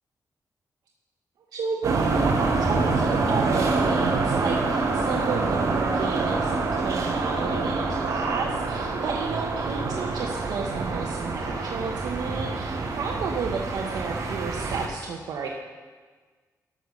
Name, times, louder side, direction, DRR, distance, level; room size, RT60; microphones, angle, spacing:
voice 1, 1.5-15.5, right 4 dB, 80° right, 0 dB, 1.0 m, -32 dB
sound 1, 1.8-14.9, right 3 dB, 55° right, 1.4 m, -26 dB
12.0 x 6.5 x 6.6 m, 1.5 s
wide cardioid pair, 135°, 6 cm